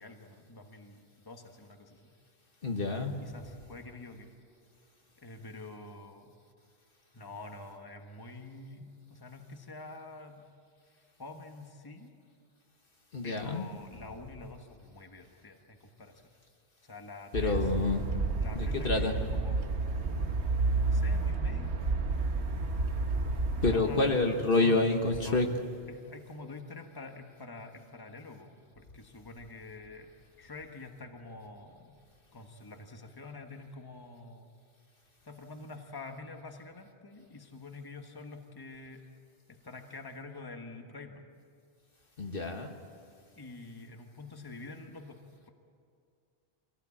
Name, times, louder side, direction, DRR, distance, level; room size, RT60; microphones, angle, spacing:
voice 1, 0.0-2.1 3.2-4.3 5.2-6.3 7.1-10.5 11.2-12.1 13.2-16.2 16.8-17.7 18.4-19.6 20.8-21.7 23.5-24.1 24.6-24.8 25.1-25.5 25.9-30.1 30.4-32.0 32.3-34.5 35.2-39.0 39.5-41.3 43.4-45.5, left 3 dB, 20° left, 4 dB, 1.4 m, -47 dB
voice 2, 2.6-3.1 13.1-13.6 17.3-18.0 18.5-19.1 20.0-20.4 23.6-25.5 42.2-42.7, left 3 dB, 50° left, 4 dB, 1.5 m, -28 dB
sound 1, 17.3-23.8, right 3 dB, 70° right, 1.5 m, -30 dB
23.5 x 16.5 x 8.5 m, 2.3 s
omnidirectional pair, 1.2 m